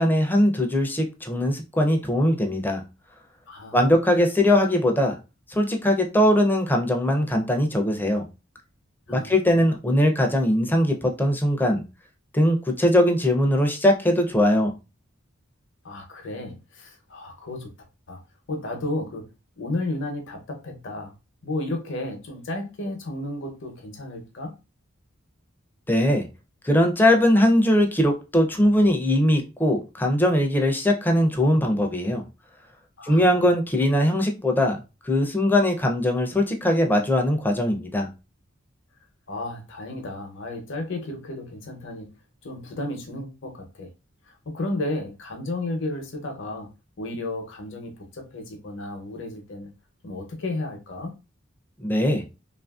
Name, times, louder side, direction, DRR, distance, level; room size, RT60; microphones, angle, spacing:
voice 1, 0.0-2.8 3.7-5.2 5.5-8.2 9.1-11.8 12.3-14.7 25.9-26.3 26.6-32.2 33.0-34.8 35.0-38.1 51.8-52.2, left 1 dB, 10° left, 0.4 m, -21 dB
voice 2, 3.5-3.8 9.1-9.4 15.8-17.7 18.1-18.2 18.5-19.3 19.6-21.1 21.4-24.5 33.0-33.4 39.3-42.1 42.4-43.9 44.3-46.7 47.0-49.7 50.0-51.1, left 2 dB, 65° left, 0.7 m, -33 dB
2.8 x 2.5 x 2.3 m
head